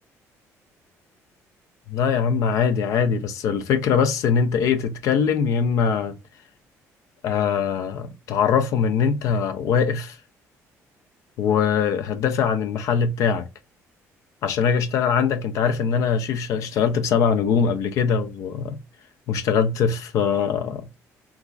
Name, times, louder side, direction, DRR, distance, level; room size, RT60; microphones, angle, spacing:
voice 1, 1.9-6.2 7.2-10.2 11.4-13.5 14.4-18.8 19.3-20.8, left 6 dB, 65° left, 0.4 m, -22 dB
3.0 x 2.3 x 2.3 m
cardioid pair, 145°, 6 cm